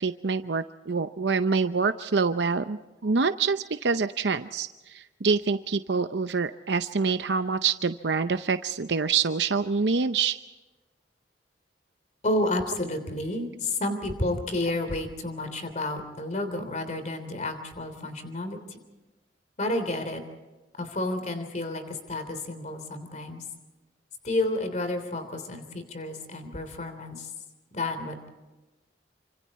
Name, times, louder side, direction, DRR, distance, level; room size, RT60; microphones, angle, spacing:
voice 1, 0.0-10.4, right 4 dB, 75° right, 10 dB, 0.7 m, -26 dB
voice 2, 12.2-18.6 19.6-20.2 20.8-23.4 24.2-27.3 27.7-28.3, left 2 dB, 45° left, 9 dB, 3.3 m, -30 dB
28.5 x 26.0 x 4.3 m, 1.1 s
head